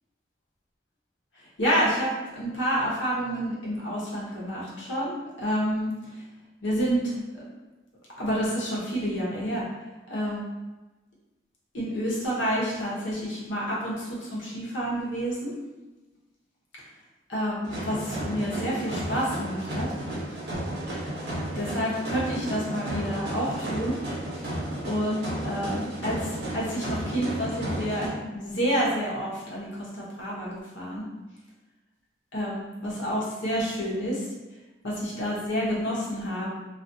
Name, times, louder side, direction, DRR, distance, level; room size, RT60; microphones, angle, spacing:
voice 1, 1.6-5.9 6.6-7.4 8.2-9.6 10.1-10.5 11.7-15.5 17.3-19.9 20.9-21.1 21.5-24.0 24.8-31.0 32.3-34.2 34.8-36.5, equal, 85° left, -6 dB, 0.9 m, -29 dB
sound 1, 17.6-28.1, right 1 dB, 65° right, 0.8 m, -33 dB
2.4 x 2.4 x 2.6 m, 1.1 s
head